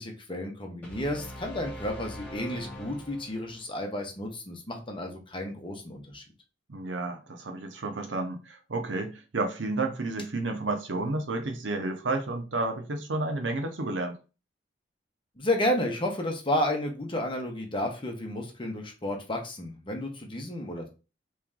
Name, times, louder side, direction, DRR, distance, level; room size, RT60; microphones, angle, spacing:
voice 1, 0.0-6.2 15.4-20.9, left 1 dB, 30° left, 0.9 m, -32 dB
sound 1, 0.8-3.7, right 1 dB, 10° left, 1.5 m, -42 dB
voice 2, 6.7-14.2, right 2 dB, 85° right, 0.8 m, -31 dB
3.2 x 2.9 x 3.7 m
head